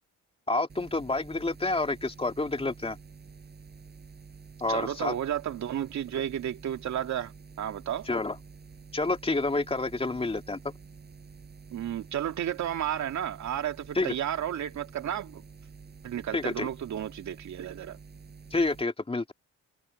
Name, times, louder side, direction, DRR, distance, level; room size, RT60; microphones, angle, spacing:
voice 1, 0.5-3.0 4.6-5.1 8.1-8.4 8.9-10.6 13.9-14.1 16.3-16.7 18.5-19.3, left 2 dB, 20° left, 2.8 m, -28 dB
sound 1, 0.7-18.8, right 5 dB, 35° right, 4.5 m, -49 dB
voice 2, 4.7-7.3 7.6-8.1 11.7-15.4 16.0-18.0, right 10 dB, 65° right, 2.6 m, -32 dB
cardioid pair, 90°, 30 cm